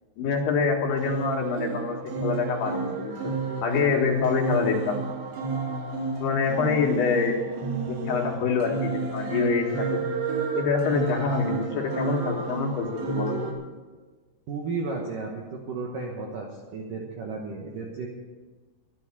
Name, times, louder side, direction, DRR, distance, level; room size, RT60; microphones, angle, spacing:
voice 1, 0.2-3.3 3.6-5.0 6.2-7.4 7.9-10.0 10.5-13.5, left 5 dB, 70° left, -1 dB, 3.7 m, -26 dB
sound 1, 0.9-13.5, right 4 dB, 80° right, 3.9 m, -31 dB
voice 2, 14.5-18.1, right 4 dB, 65° right, -1 dB, 2.4 m, -33 dB
12.0 x 11.0 x 6.8 m, 1.3 s
omnidirectional pair, 5.1 m